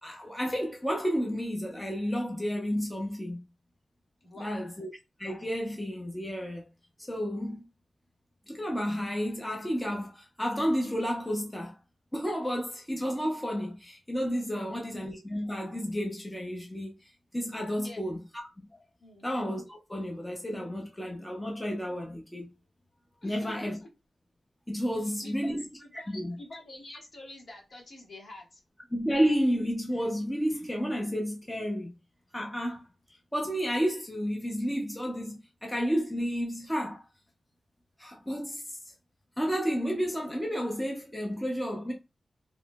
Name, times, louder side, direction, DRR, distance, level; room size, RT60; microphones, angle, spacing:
voice 1, 0.0-3.4 4.4-4.9 5.2-6.6 7.1-7.7 8.5-11.8 12.1-16.9 17.3-18.7 19.2-22.5 23.2-23.8 24.7-25.6 25.9-26.3 28.9-31.9 32.3-32.8 33.3-37.0 38.0-38.7 39.4-41.9, equal, 10° left, 0.7 m, -31 dB
voice 2, 4.2-4.6 14.5-14.7 17.8-18.0 19.0-19.3 23.2-23.7 25.0-28.6, left 2 dB, 55° left, 1.3 m, -47 dB
3.1 x 2.9 x 2.2 m
wide cardioid pair, 80°, 0 cm